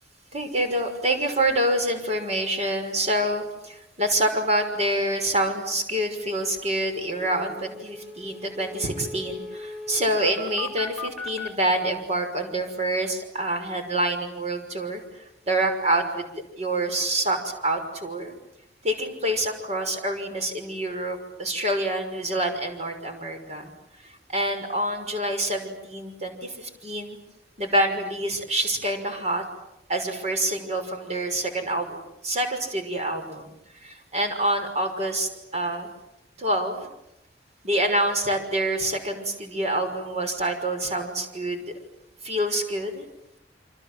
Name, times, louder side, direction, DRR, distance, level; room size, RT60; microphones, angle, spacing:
voice 1, 0.3-16.3 16.6-18.3 18.8-23.7 24.0-27.2 27.6-29.4 29.9-32.0 32.2-33.5 33.8-35.9 36.4-36.9 37.6-41.7 42.2-43.0, right 1 dB, 40° right, 5 dB, 6.0 m, -27 dB
sound 1, 6.2-6.3 6.6-6.7 6.9-11.5, left 3 dB, ahead, 4.2 m, -38 dB
28.5 x 26.5 x 7.8 m, 0.84 s
head